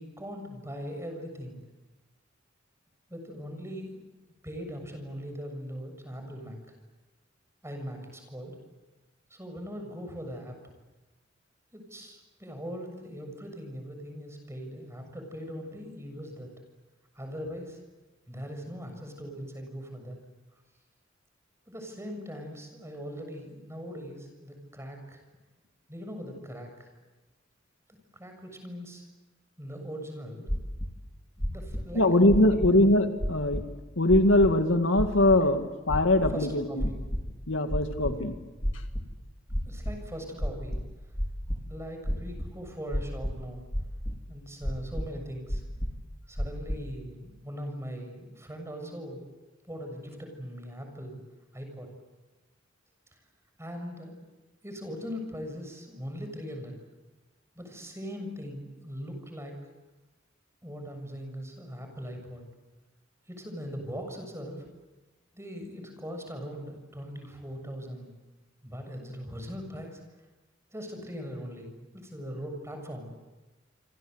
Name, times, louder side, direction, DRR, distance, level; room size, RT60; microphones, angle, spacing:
voice 1, 0.0-1.6 3.1-4.0 4.4-6.6 7.6-8.6 9.3-10.6 11.7-16.5 17.2-17.8 18.3-20.2 21.7-25.2 25.9-26.9 28.1-29.1 29.6-30.5 31.5-32.8 36.3-37.1 38.1-38.3 39.7-40.8 41.6-43.6 44.3-45.6 46.3-49.3 49.6-51.2 51.5-51.9 53.6-54.2 54.6-56.8 57.6-59.6 60.6-62.4 63.3-64.7 65.3-68.1 68.6-70.0 70.7-73.1, equal, 15° right, 4 dB, 7.1 m, -40 dB
sound 1, 30.5-30.9 31.4-31.8 32.3-32.8 33.2-33.6 34.1-34.5 35.0-35.4 35.9-36.3 36.8-37.3 37.7-38.2 38.6-39.1 39.5-39.9 40.4-41.6 42.0-42.5 42.9-43.4 43.7-44.2 44.6-45.1 45.5-46.0 46.4-46.8, equal, 25° left, 4.4 m, -30 dB
voice 2, 31.9-33.6 34.0-36.9 37.5-38.4, left 1 dB, 80° left, 7 dB, 2.1 m, -22 dB
28.0 x 26.0 x 8.1 m, 1.1 s
head